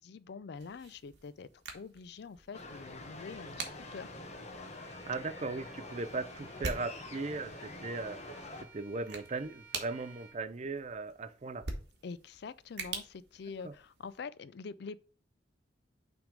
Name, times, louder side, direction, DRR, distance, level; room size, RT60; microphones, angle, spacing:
voice 1, 0.0-1.5 1.7-4.1 12.0-15.0, left 5 dB, 65° left, 0.4 m, -45 dB
sound 1, 0.5-14.2, right 4 dB, 65° right, 1.3 m, -47 dB
sound 2, 2.5-8.6, left 2 dB, 40° left, 1.0 m, -46 dB
Bowed string instrument, 4.7-10.4, right 4 dB, 15° right, 1.2 m, -58 dB
voice 2, 4.8-11.7 13.6-13.7, right 3 dB, 40° right, 0.5 m, -38 dB
6.0 x 3.5 x 5.1 m
head